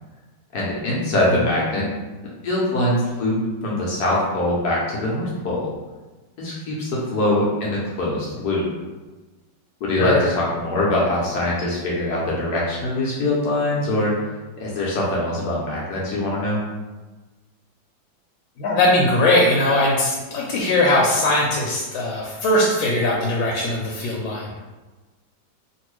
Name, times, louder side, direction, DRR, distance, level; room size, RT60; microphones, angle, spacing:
voice 1, 0.5-1.9 2.4-5.7 6.4-8.7 9.8-14.1 14.6-16.6, left 1 dB, 65° left, -5 dB, 1.0 m, -23 dB
voice 2, 18.6-24.5, left 1 dB, 85° left, -3 dB, 1.4 m, -20 dB
3.0 x 2.6 x 3.0 m, 1.2 s
omnidirectional pair, 2.1 m